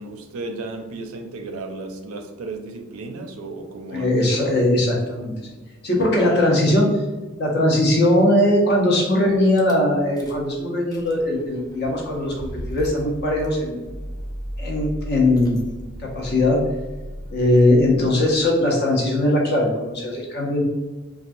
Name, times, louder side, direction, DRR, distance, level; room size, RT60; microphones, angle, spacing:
voice 1, 0.0-4.1, right 3 dB, 80° right, 5 dB, 0.4 m, -34 dB
voice 2, 3.9-5.3 5.8-6.9 7.4-13.8 14.6-15.6 16.0-16.7 17.3-20.6, left 1 dB, 55° left, -1 dB, 0.8 m, -20 dB
Rattle / Car / Engine starting, 9.6-9.7 10.2-10.5 10.8-18.5, equal, 15° left, 0.5 m, -36 dB
3.1 x 2.4 x 2.6 m, 1.1 s
head